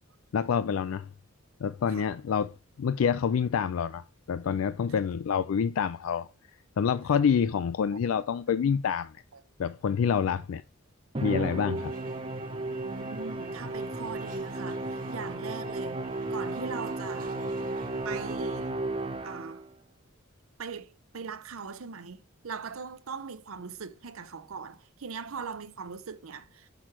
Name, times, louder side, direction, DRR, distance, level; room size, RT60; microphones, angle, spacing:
voice 1, 0.3-1.1 1.6-6.3 6.8-9.2 9.6-10.6 11.2-11.9, left 7 dB, 75° left, 0.4 m, -27 dB
Musical instrument, 11.1-19.7, right 2 dB, 25° right, 0.6 m, -34 dB
Railroad Crossing and Freight Train Passes, 11.8-18.4, right 3 dB, 40° right, 1.5 m, -50 dB
voice 2, 12.8-16.0 16.3-17.4 18.0-18.8 19.2-19.6 20.6-26.7, right 5 dB, 75° right, 0.7 m, -40 dB
6.2 x 6.0 x 3.1 m
head